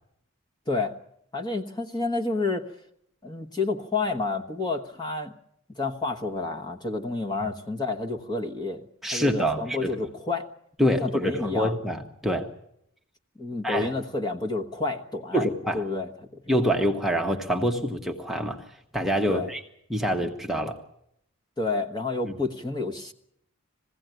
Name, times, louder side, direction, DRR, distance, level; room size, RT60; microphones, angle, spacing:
voice 1, 0.7-1.0 1.3-2.7 3.2-5.3 5.7-10.5 10.9-11.7 13.4-15.5 15.7-16.4 19.3-19.5 21.6-23.1, left 3 dB, 20° left, 4 dB, 1.2 m, -29 dB
voice 2, 9.0-9.9 10.8-12.5 13.6-13.9 15.3-15.9 16.5-18.6 18.9-19.6 19.9-20.8, equal, ahead, 1 dB, 1.1 m, -26 dB
21.5 x 16.0 x 9.2 m, 0.75 s
head